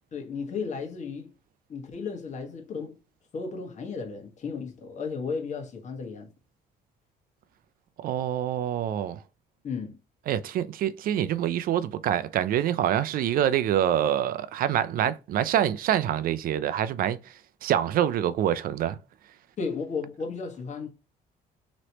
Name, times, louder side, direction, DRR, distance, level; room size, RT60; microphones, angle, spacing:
voice 1, 0.1-1.3 1.7-3.0 3.3-6.3 9.6-10.0 19.6-20.9, left 5 dB, 45° left, 1.4 m, -34 dB
voice 2, 8.0-9.2 10.3-19.0, right 10 dB, 60° right, 0.4 m, -26 dB
3.1 x 3.0 x 2.8 m
cardioid pair, 110°, 17 cm